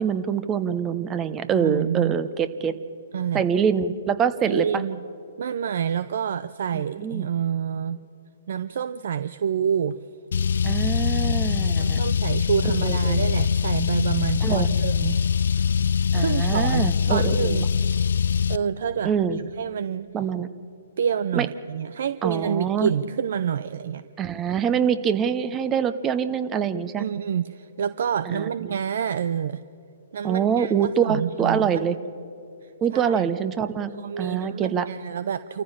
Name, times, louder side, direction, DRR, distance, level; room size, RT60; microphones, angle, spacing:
voice 1, 0.0-2.7 3.3-4.8 6.7-7.3 10.6-12.0 12.8-13.2 14.4-14.7 16.1-17.6 19.0-19.4 20.1-20.5 21.4-21.5 22.2-22.9 24.2-27.0 28.3-28.5 30.2-32.0 32.8-33.9 34.2-34.9, right 7 dB, 20° right, 13 dB, 0.9 m, -25 dB
voice 2, 1.5-2.2 3.1-3.4 4.5-5.0 5.4-8.0 8.5-10.0 10.5-10.6 11.8-15.2 16.2-17.7 18.5-19.1 19.6-20.1 21.0-24.0 27.0-29.6 30.1-31.8 32.6-33.3 34.0-35.6, right 8 dB, 60° right, 15 dB, 0.5 m, -28 dB
Car, 10.3-18.6, left 6 dB, 70° left, 0.4 m, -23 dB
27.5 x 14.5 x 7.3 m, 2.7 s
hypercardioid pair, 130°, 0 cm